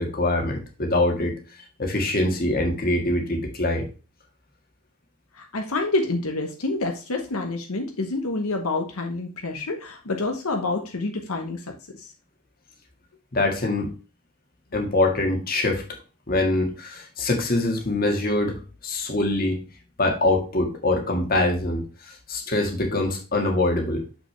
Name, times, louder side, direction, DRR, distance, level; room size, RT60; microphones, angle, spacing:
voice 1, 0.0-1.3 1.8-3.9 13.3-13.9 14.7-15.8 16.3-19.6 20.0-24.0, left 2 dB, 40° left, 2 dB, 1.7 m, -24 dB
voice 2, 5.3-11.6 12.0-12.1, left 2 dB, 85° left, 3 dB, 1.1 m, -27 dB
6.8 x 6.1 x 3.3 m, 0.33 s
head